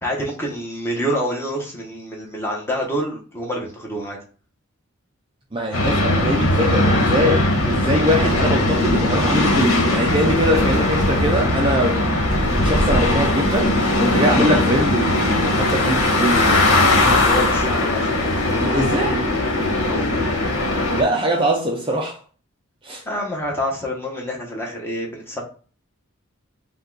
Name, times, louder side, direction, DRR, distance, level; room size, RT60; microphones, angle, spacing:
voice 1, 0.0-4.2 17.2-18.3 19.9-20.2 23.0-25.4, equal, 10° left, 1.1 m, -27 dB
voice 2, 5.5-16.7 18.6-19.2 20.9-22.2 22.8-23.0, equal, 25° right, 0.6 m, -22 dB
sound 1, 5.7-21.0, left 1 dB, 70° left, 1.4 m, -19 dB
5.3 x 2.5 x 3.8 m
head